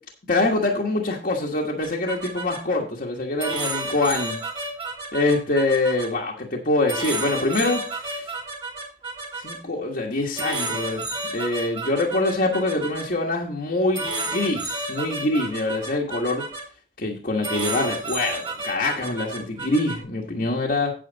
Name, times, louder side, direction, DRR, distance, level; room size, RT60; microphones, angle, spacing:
voice 1, 0.3-4.4 5.1-8.3 9.4-11.1 11.3-16.4 17.0-20.9, left 2 dB, 55° left, -1 dB, 1.5 m, -24 dB
sound 1, 1.8-2.6 3.4-6.1 6.9-9.6 10.4-13.0 13.9-16.6 17.4-20.0, right 2 dB, 25° right, 3.1 m, -31 dB
9.0 x 8.3 x 4.0 m, 0.38 s
head